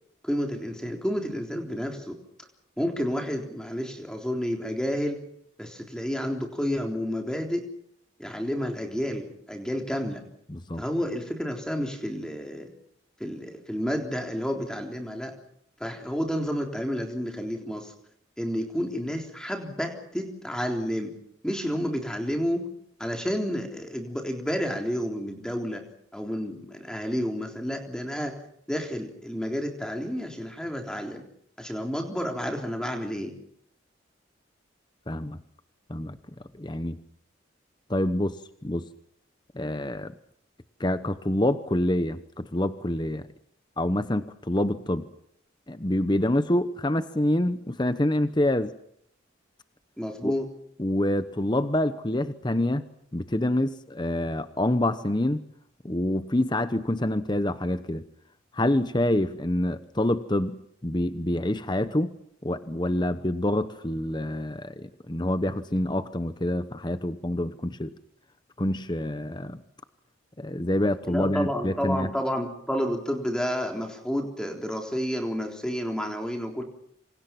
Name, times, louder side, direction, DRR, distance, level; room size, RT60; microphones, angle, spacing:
voice 1, 0.2-2.2 2.8-5.2 5.6-7.6 8.2-10.2 10.8-12.7 13.2-15.3 15.8-17.9 18.4-21.2 21.4-22.7 23.0-25.9 26.1-28.3 28.7-31.2 31.6-33.3 50.0-50.5 71.1-76.6, equal, 5° left, 2 dB, 3.7 m, -30 dB
voice 2, 10.5-10.8 35.1-35.4 35.9-36.2 36.6-37.0 37.9-38.4 38.6-38.8 39.5-40.1 40.8-43.2 43.8-45.1 45.7-48.7 50.2-50.3 50.8-52.8 53.1-55.4 55.8-58.0 58.5-60.6 60.8-62.1 62.4-67.9 68.6-69.6 70.4-72.1, left 1 dB, 20° left, 11 dB, 0.9 m, -26 dB
27.5 x 26.5 x 6.0 m, 0.70 s
head